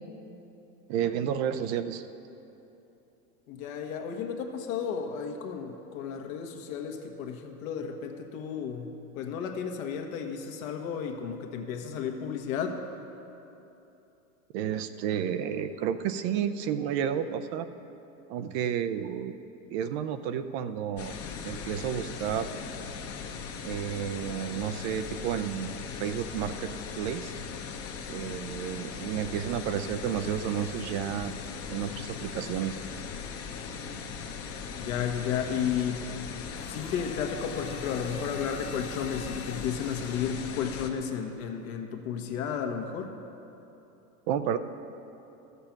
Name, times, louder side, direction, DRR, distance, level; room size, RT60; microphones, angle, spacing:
voice 1, 0.9-2.0 14.5-17.7 18.3-19.3 19.7-21.1 21.4-22.5 23.6-27.3 28.1-31.4 31.7-32.8 44.3-44.6, right 9 dB, 45° right, 11 dB, 0.6 m, -31 dB
voice 2, 3.5-12.8 34.8-36.1 36.7-43.1, left 7 dB, 65° left, 4 dB, 1.4 m, -33 dB
sound 1, 21.0-40.9, left 6 dB, 35° left, 1.0 m, -39 dB
Domestic sounds home sounds, 36.6-40.6, left 4 dB, 15° left, 0.5 m, -47 dB
13.5 x 6.9 x 5.9 m, 3.0 s
hypercardioid pair, 105°, 45 cm